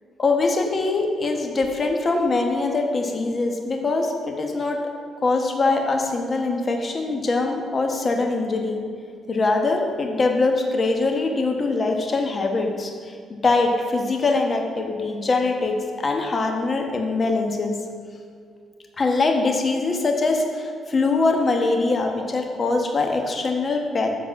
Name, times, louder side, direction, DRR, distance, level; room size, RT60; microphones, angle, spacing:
voice 1, 0.2-4.8 5.2-8.8 9.3-13.1 13.4-15.8 16.0-17.7 19.0-24.1, left 3 dB, 35° left, 3 dB, 1.1 m, -23 dB
8.6 x 4.0 x 5.9 m, 2.2 s
cardioid pair, 90°, 0 cm